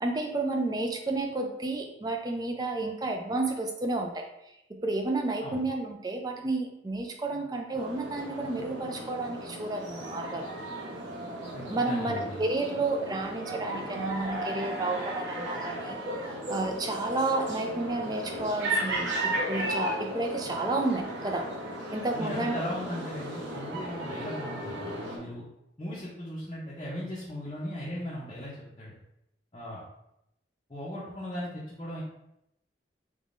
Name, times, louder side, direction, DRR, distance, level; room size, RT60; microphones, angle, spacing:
voice 1, 0.0-4.3 4.7-10.4 11.7-21.5 21.9-22.5, right 2 dB, 20° right, 3 dB, 0.4 m, -31 dB
sound 1, 7.7-25.2, right 1 dB, 85° right, 0.9 m, -35 dB
voice 2, 11.5-12.4 22.1-25.4 25.8-29.0 29.5-29.8 30.7-32.0, equal, 25° left, -8 dB, 0.6 m, -37 dB
3.5 x 3.1 x 2.5 m, 0.82 s
head